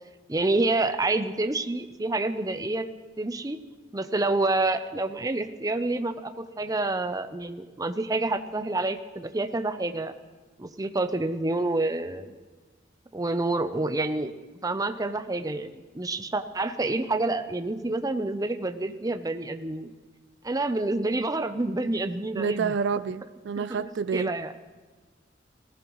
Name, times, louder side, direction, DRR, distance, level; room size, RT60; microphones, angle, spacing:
voice 1, 0.3-2.8 3.2-3.6 3.9-10.1 10.6-12.3 13.1-14.3 14.6-19.9 20.4-22.7 23.6-23.7 24.1-24.5, right 2 dB, 20° right, 9 dB, 0.6 m, -28 dB
voice 2, 22.3-24.3, right 6 dB, 65° right, 15 dB, 0.4 m, -29 dB
18.5 x 16.0 x 3.1 m, 1.3 s
head